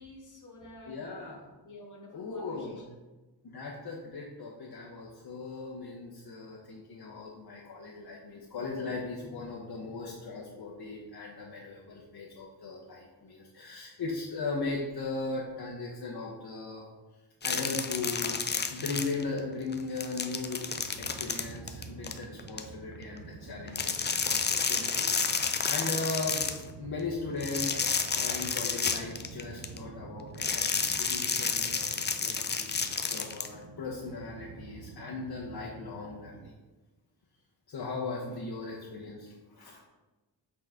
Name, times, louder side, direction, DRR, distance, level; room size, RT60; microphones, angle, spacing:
voice 1, 0.0-1.0 1.6-2.8 28.4-28.5 38.2-38.4, left 1 dB, 45° left, -1 dB, 1.6 m, -49 dB
voice 2, 0.9-1.4 2.1-2.9 3.4-16.9 17.4-18.4 18.7-20.6 21.0-26.4 26.8-27.8 28.1-32.8 33.1-36.5 37.7-39.8, left 3 dB, 60° left, -5 dB, 1.1 m, -38 dB
sound 1, 17.4-19.4 19.7-22.6 23.7-26.6 27.4-29.8 30.4-33.5, left 5 dB, 25° left, 0.4 m, -30 dB
sound 2, 17.4-36.5, right 5 dB, 85° right, 0.8 m, -48 dB
7.9 x 4.2 x 3.7 m, 1.2 s
wide cardioid pair, 130°, 44 cm